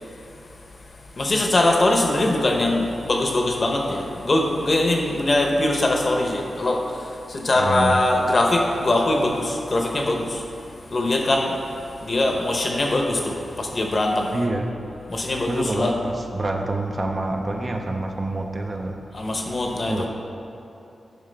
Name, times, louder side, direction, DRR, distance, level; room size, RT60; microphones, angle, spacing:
voice 1, 1.2-6.8 7.3-10.4 10.9-11.5 12.0-14.3 15.1-15.9 19.1-20.1, left 2 dB, 40° left, 1 dB, 0.8 m, -22 dB
voice 2, 7.5-8.0 14.3-14.7 15.5-19.0 19.9-20.1, right 2 dB, 30° right, 2 dB, 0.5 m, -27 dB
9.4 x 5.8 x 3.4 m, 2.9 s
wide cardioid pair, 135°, 0 cm